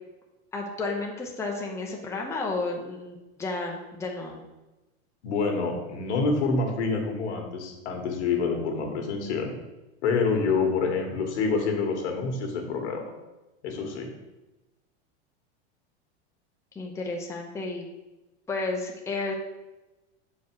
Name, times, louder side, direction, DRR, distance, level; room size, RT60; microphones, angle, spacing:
voice 1, 0.5-4.4 16.7-17.9 18.5-19.3, left 3 dB, 10° left, 0 dB, 0.7 m, -32 dB
voice 2, 5.2-9.5 10.0-13.0 13.6-14.1, left 4 dB, 80° left, 3 dB, 1.7 m, -27 dB
7.0 x 4.7 x 4.6 m, 1.1 s
supercardioid pair, 140°, 34 cm